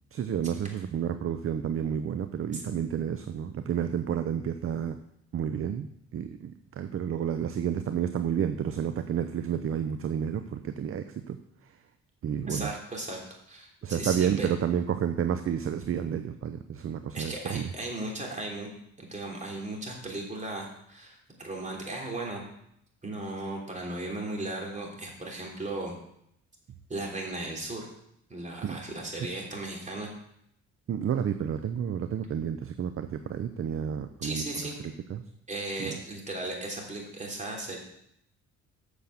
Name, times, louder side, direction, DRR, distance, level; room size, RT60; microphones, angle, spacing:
voice 1, 0.1-5.0 5.3-11.8 12.2-12.7 13.8-17.7 28.6-28.8 29.1-29.3 30.9-34.7 35.1-35.2 35.8-36.0, right 8 dB, 45° right, 9 dB, 0.7 m, -30 dB
voice 2, 12.5-14.5 17.1-18.7 19.0-22.4 23.0-26.0 26.9-27.8 28.3-30.1 34.2-34.7 35.5-37.8, right 2 dB, 25° right, -1 dB, 3.3 m, -36 dB
8.1 x 6.5 x 7.0 m, 0.74 s
cardioid pair, 90°, 30 cm